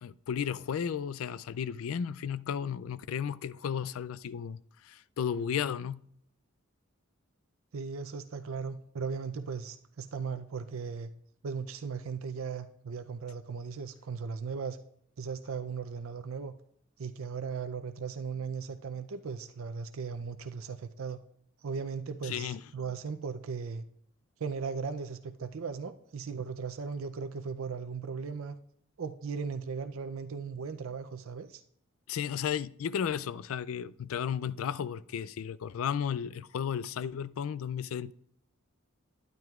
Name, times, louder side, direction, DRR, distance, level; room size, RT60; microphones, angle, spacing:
voice 1, 0.0-4.6 4.8-6.0 22.2-22.6 32.1-38.1, left 8 dB, 80° left, 0.3 m, -34 dB
voice 2, 7.7-11.1 11.4-14.8 15.2-16.5 17.0-21.2 21.6-23.9 24.4-28.5 29.0-31.6, right 5 dB, 80° right, 0.5 m, -37 dB
12.0 x 9.2 x 2.4 m
head